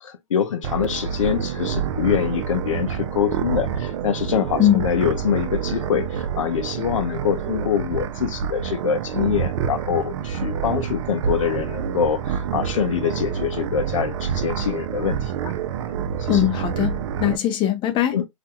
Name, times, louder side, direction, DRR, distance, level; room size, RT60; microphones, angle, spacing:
voice 1, 0.0-15.5 15.9-16.0 16.2-16.4 18.1-18.3, left 8 dB, 85° left, 0.6 m, -25 dB
sound 1, 0.6-17.4, right 8 dB, 65° right, 0.5 m, -27 dB
voice 2, 16.3-18.2, left 12 dB, 30° left, 0.7 m, -20 dB
2.5 x 2.2 x 2.8 m
hypercardioid pair, 120°, 16 cm